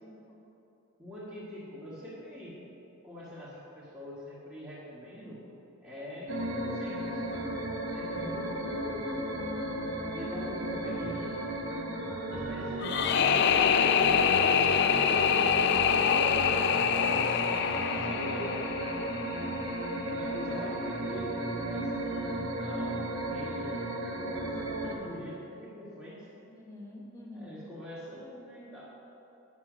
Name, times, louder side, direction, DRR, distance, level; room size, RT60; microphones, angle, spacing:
voice 1, 0.0-0.5 8.2-8.9 26.5-27.6, left 1 dB, 15° left, -4 dB, 1.0 m, -49 dB
voice 2, 1.0-2.6 3.0-5.4 5.8-7.2 7.9-9.1 10.1-11.5 12.3-14.2 14.7-15.5 16.1-16.6 17.7-18.9 20.0-26.3 27.3-28.8, left 1 dB, 10° right, -11 dB, 1.6 m, -44 dB
sound 1, 6.3-24.9, right 1 dB, 60° right, 1.1 m, -34 dB
sound 2, 12.8-19.8, left 7 dB, 50° left, 0.3 m, -25 dB
9.7 x 6.0 x 6.2 m, 2.9 s
head